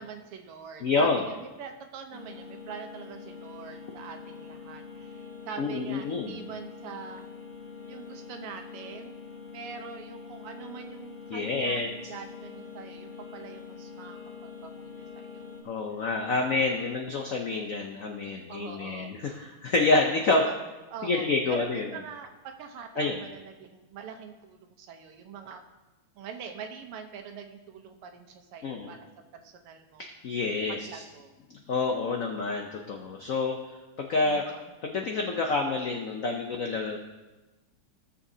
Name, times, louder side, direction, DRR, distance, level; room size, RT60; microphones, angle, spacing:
voice 1, 0.0-7.3 7.9-9.2 9.5-15.6 15.9-16.0 16.3-17.0 18.5-19.6 20.3-20.6 20.9-25.6 26.1-29.0 29.3-30.0 30.7-31.3 34.2-34.8, right 6 dB, 90° right, 5 dB, 1.8 m, -44 dB
voice 2, 0.8-1.2 5.6-6.4 11.3-11.9 15.6-20.4 21.0-21.9 23.0-23.2 28.6-29.0 30.0-31.0 31.7-33.6 34.0-34.4 34.8-37.0, left 3 dB, 80° left, 2 dB, 0.7 m, -28 dB
sound 1, 2.1-15.6, left 5 dB, 45° left, 1.4 m, -44 dB
17.0 x 7.0 x 2.7 m, 1.1 s
omnidirectional pair, 2.4 m